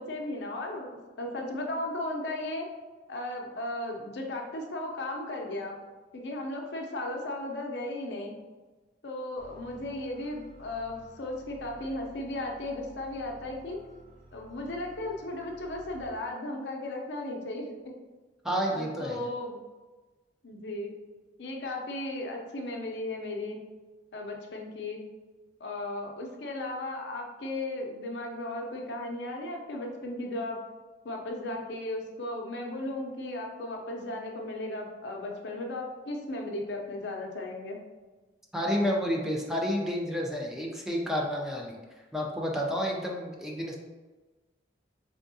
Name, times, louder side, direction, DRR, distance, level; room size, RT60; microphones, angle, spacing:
voice 1, 0.0-2.6 3.1-5.8 6.1-8.3 9.0-13.8 14.3-17.9 18.7-19.6 20.4-21.0 21.4-23.6 24.1-25.0 25.6-30.6 31.0-37.8, left 1 dB, 80° left, 1 dB, 0.6 m, -36 dB
sound 1, 9.4-16.1, equal, 45° right, 1.1 m, -53 dB
voice 2, 18.4-19.3 38.5-41.8 42.1-43.8, equal, 5° right, -1 dB, 0.4 m, -30 dB
3.5 x 3.5 x 2.7 m, 1.3 s
head